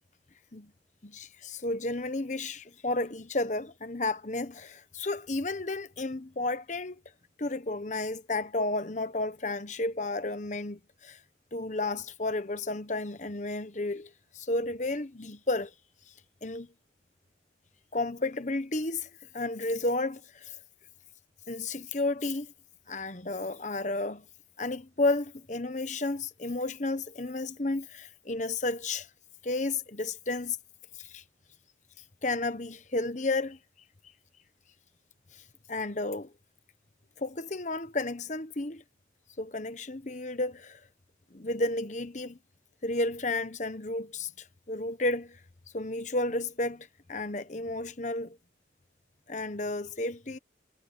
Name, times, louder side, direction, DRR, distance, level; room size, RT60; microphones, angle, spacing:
voice 1, 1.0-7.0 7.4-11.2 11.5-15.7 16.4-16.7 17.9-19.1 19.3-20.6 21.5-22.5 22.9-24.2 24.6-29.1 29.4-30.6 31.0-31.2 32.2-33.6 35.7-36.3 37.2-38.8 39.4-40.8 41.3-42.4 42.8-44.3 44.7-45.4 45.7-48.4 49.3-50.4, left 2 dB, 40° left, 1.1 m, -32 dB
head